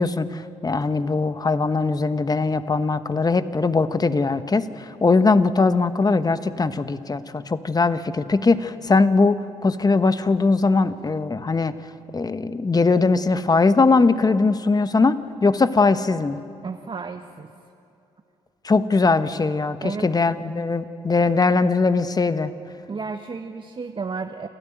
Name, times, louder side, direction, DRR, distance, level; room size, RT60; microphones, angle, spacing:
voice 1, 0.0-11.7 12.1-15.2 15.4-16.4 18.6-22.5, left 3 dB, 30° left, 11 dB, 1.3 m, -20 dB
voice 2, 16.6-17.5 19.8-20.1 20.4-20.5 22.9-24.5, right 4 dB, 40° right, 5 dB, 1.2 m, -32 dB
28.0 x 13.5 x 9.3 m, 2.7 s
hypercardioid pair, 50°, 13 cm